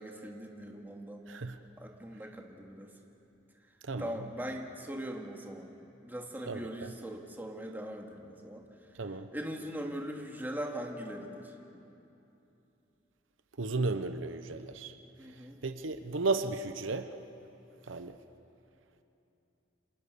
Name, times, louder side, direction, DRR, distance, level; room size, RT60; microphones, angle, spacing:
voice 1, 0.0-1.3 1.8-2.9 4.0-5.7 6.0-8.6 9.3-11.5 15.2-15.6, equal, 10° right, 1 dB, 2.4 m, -40 dB
voice 2, 1.3-1.6 3.8-4.2 6.5-6.9 9.0-9.3 13.6-14.9 15.6-17.1 17.9-18.1, right 3 dB, 75° right, 9 dB, 0.9 m, -34 dB
29.5 x 26.0 x 6.9 m, 2.9 s
head